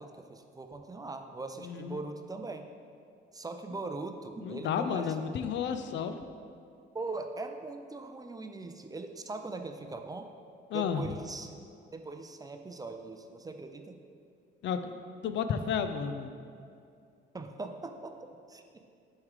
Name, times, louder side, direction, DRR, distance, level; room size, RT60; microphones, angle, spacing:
voice 1, 0.0-2.7 3.3-5.1 6.9-10.3 10.7-11.5 11.9-14.0 17.3-18.8, right 3 dB, 20° right, 5 dB, 0.4 m, -41 dB
voice 2, 1.6-2.0 4.4-6.2 10.7-11.1 14.6-16.3, left 7 dB, 65° left, 9 dB, 0.4 m, -32 dB
7.1 x 3.2 x 4.9 m, 2.4 s
cardioid pair, 90°, 20 cm